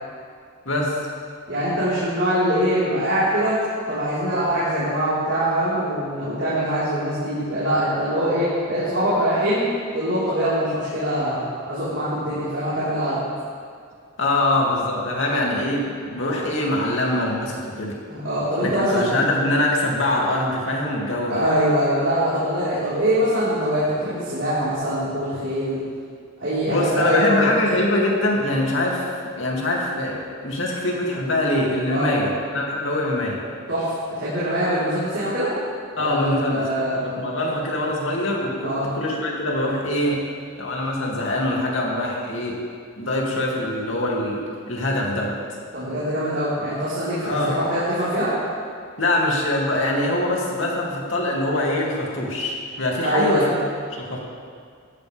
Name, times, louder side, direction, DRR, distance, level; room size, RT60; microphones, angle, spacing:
voice 1, 1.5-3.6 3.9-9.6 9.9-13.2 18.1-19.2 21.3-25.8 26.4-27.5 31.9-32.1 33.7-35.5 36.0-36.9 38.6-38.9 45.7-48.3 53.0-53.5, equal, 55° right, -12 dB, 4.3 m, -23 dB
voice 2, 14.2-17.9 18.6-21.4 26.7-29.0 29.4-33.4 36.0-36.7 37.0-40.2 40.6-42.6 43.0-44.4 44.7-45.3 47.2-47.6 49.0-53.5 54.0-54.2, left 1 dB, 60° left, -3 dB, 2.6 m, -23 dB
17.5 x 14.5 x 3.5 m, 2.1 s
head